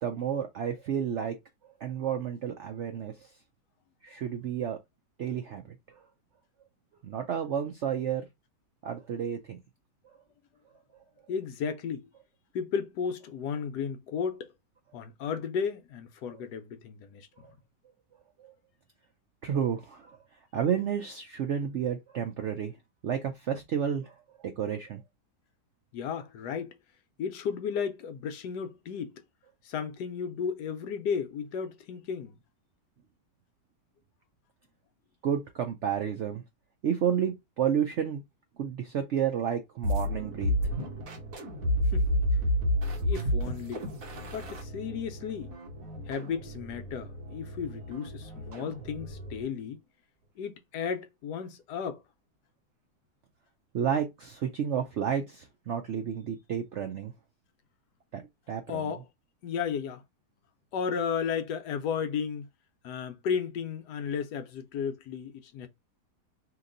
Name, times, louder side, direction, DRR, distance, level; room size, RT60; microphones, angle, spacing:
voice 1, 0.0-1.4 1.8-3.3 4.0-4.8 5.2-6.0 7.0-8.3 8.8-9.6 18.4-18.5 19.4-20.2 20.5-22.8 23.0-24.2 24.6-25.0 35.2-36.4 36.8-38.2 38.6-40.5 53.7-57.1 58.1-58.2 58.5-58.9, right 8 dB, 75° right, 0.6 m, -31 dB
voice 2, 11.3-12.0 12.5-14.5 14.9-17.3 25.9-26.7 27.2-29.1 29.6-32.4 41.9-42.1 43.0-43.9 44.1-45.5 46.1-49.8 50.4-52.0 58.7-59.0 59.4-60.0 60.7-62.5 62.8-65.7, left 6 dB, 75° left, 1.2 m, -34 dB
sound 1, 39.8-49.5, equal, 55° right, 1.4 m, -31 dB
3.0 x 2.9 x 3.7 m
omnidirectional pair, 1.8 m